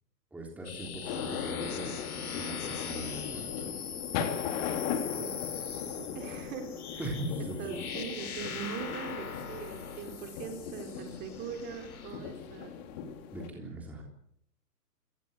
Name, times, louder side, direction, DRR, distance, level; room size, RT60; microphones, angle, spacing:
voice 1, 0.3-3.6 7.0-7.9 13.3-14.0, right 1 dB, 5° right, 0 dB, 3.5 m, -40 dB
sound 1, 0.6-12.3, left 7 dB, 60° left, 4.2 m, -41 dB
sound 2, 1.0-13.5, left 8 dB, 25° left, 3.2 m, -38 dB
voice 2, 5.2-5.6 6.0-7.1 7.6-12.8, right 7 dB, 20° right, 5 dB, 3.8 m, -41 dB
29.5 x 18.0 x 8.2 m, 0.71 s
hypercardioid pair, 150°, 50 cm